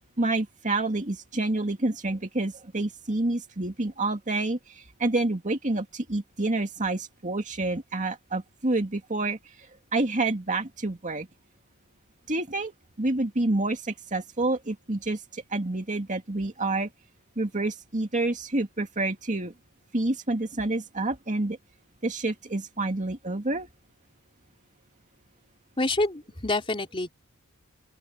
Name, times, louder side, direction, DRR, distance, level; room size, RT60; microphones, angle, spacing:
voice 1, 0.2-11.3 12.3-12.7 13.0-16.9 17.4-19.5 19.9-21.6 22.0-23.7, right 2 dB, 35° right, 2.3 m, -28 dB
voice 2, 25.8-27.1, left 2 dB, 25° left, 3.4 m, -27 dB
open air
head